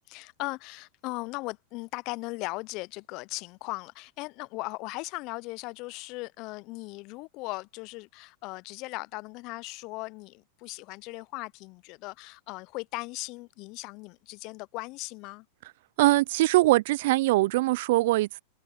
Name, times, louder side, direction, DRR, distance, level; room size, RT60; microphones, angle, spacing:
voice 1, 0.1-15.5, left 24 dB, 50° left, 0.4 m, -38 dB
voice 2, 16.0-18.4, right 18 dB, 65° right, 0.3 m, -22 dB
hypercardioid pair, 105°, 0 cm